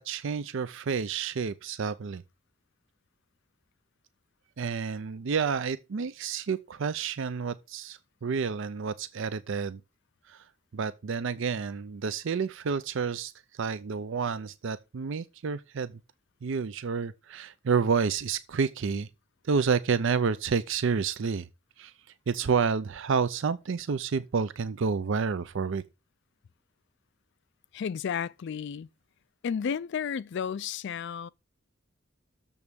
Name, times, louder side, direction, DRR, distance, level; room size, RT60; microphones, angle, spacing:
voice 1, 0.0-2.2 4.6-9.8 10.3-10.5 10.7-16.0 16.4-19.1 19.4-21.5 21.8-21.9 22.3-25.8, right 5 dB, 65° right, 0.5 m, -29 dB
voice 2, 27.7-28.9 29.4-31.3, left 7 dB, 60° left, 0.3 m, -32 dB
7.1 x 5.3 x 6.2 m
head